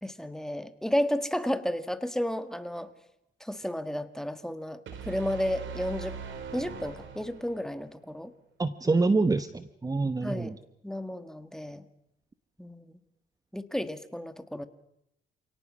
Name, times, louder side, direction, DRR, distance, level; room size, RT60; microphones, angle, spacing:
voice 1, 0.0-2.9 3.4-6.2 6.5-8.3 10.2-10.6 10.8-11.8 12.6-13.0 13.5-14.7, equal, ahead, 10 dB, 1.6 m, -32 dB
sound 1, 4.9-7.8, right 6 dB, 75° right, 3.7 m, -41 dB
voice 2, 8.6-10.5, right 3 dB, 20° right, 11 dB, 0.9 m, -26 dB
28.0 x 18.0 x 6.2 m, 0.81 s
cardioid pair, 90°, 20 cm